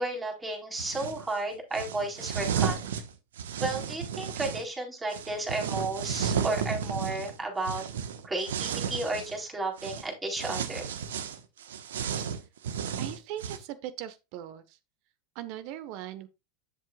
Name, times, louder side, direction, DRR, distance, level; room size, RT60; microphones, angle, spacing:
voice 1, 0.0-2.9 3.6-7.9 8.2-10.9, right 2 dB, 15° right, 4.3 m, -33 dB
sound 1, 0.8-1.2 1.7-4.6 5.1-9.4 9.8-10.0 10.4-13.6, right 7 dB, 70° right, 1.2 m, -33 dB
voice 2, 13.0-14.8 15.3-16.3, right 12 dB, 55° right, 1.1 m, -39 dB
11.0 x 7.5 x 2.4 m
hypercardioid pair, 90°, 0 cm